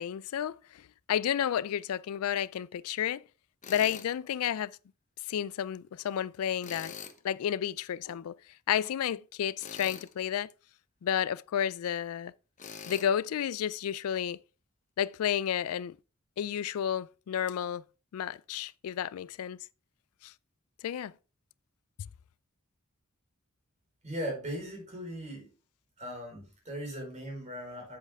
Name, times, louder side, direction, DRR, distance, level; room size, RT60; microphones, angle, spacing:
voice 1, 0.0-3.2 3.7-4.7 5.2-6.9 7.2-8.4 8.7-10.5 11.0-12.3 12.9-14.4 15.0-16.0 16.4-17.8 18.1-19.6 20.2-20.3 20.8-21.1, left 9 dB, 75° left, 0.3 m, -31 dB
Tools, 3.6-4.1 6.6-7.2 9.6-10.1 12.6-13.1, left 6 dB, 35° left, 1.0 m, -43 dB
voice 2, 24.0-25.5 26.0-28.0, equal, 35° right, 4.6 m, -38 dB
8.2 x 7.8 x 3.5 m
head